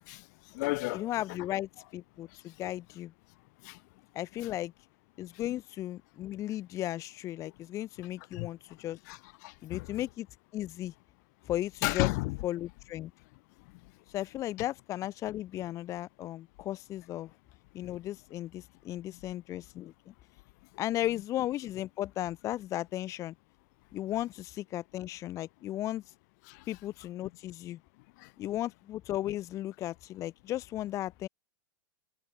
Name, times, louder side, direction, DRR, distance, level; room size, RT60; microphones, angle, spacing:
voice 1, 0.1-1.1 2.6-2.7 3.6-3.8 4.4-4.5 8.2-8.5 9.1-10.0 11.8-12.4 19.1-19.2 26.4-26.6 28.2-28.3, left 25 dB, 55° left, 0.8 m, -34 dB
voice 2, 0.9-3.1 4.1-4.7 5.2-9.0 9.6-10.3 10.5-10.9 11.5-12.1 12.4-13.1 14.1-17.3 17.7-20.1 20.8-23.3 23.9-26.0 26.7-27.8 28.4-31.3, left 14 dB, 30° left, 0.5 m, -35 dB
supercardioid pair, 145°, 11 cm